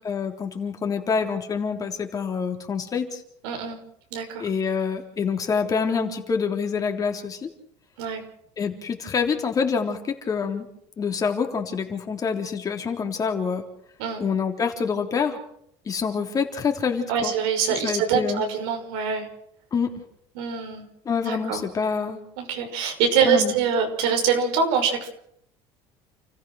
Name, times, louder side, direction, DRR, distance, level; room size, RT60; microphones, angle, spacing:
voice 1, 0.0-3.2 4.4-7.5 8.6-10.7 11.0-13.7 14.2-15.4 15.9-17.3 17.8-18.5 19.7-20.0 21.1-22.2 23.2-23.5, left 5 dB, 30° left, 4 dB, 3.5 m, -26 dB
voice 2, 3.4-3.8 4.1-4.5 8.0-8.2 14.0-14.2 17.1-19.3 20.4-20.8 21.3-21.6 22.4-25.1, right 6 dB, 85° right, 4 dB, 5.9 m, -24 dB
30.0 x 15.0 x 6.4 m, 0.72 s
cardioid pair, 125°, 12 cm